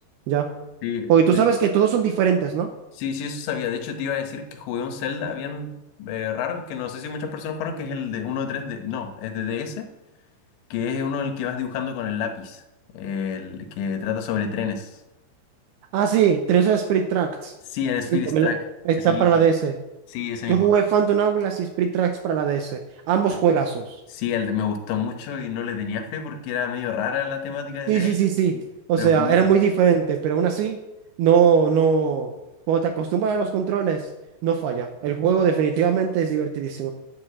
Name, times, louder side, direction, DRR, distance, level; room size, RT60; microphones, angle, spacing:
voice 1, 0.3-0.6 1.1-2.7 15.9-17.5 18.3-18.5 18.9-19.8 20.5-22.8 23.1-24.0 27.9-28.6 28.9-30.8 31.2-32.3 32.7-34.1 34.4-36.9, right 7 dB, 80° right, 5 dB, 2.4 m, -20 dB
voice 2, 0.8-1.4 3.0-9.9 10.7-12.6 12.9-15.0 17.7-18.6 19.0-19.3 20.1-20.7 23.3-23.4 24.1-28.2 28.5-28.6 29.0-29.6, left 7 dB, 80° left, 6 dB, 3.3 m, -29 dB
9.9 x 6.8 x 7.6 m, 0.96 s
omnidirectional pair, 5.2 m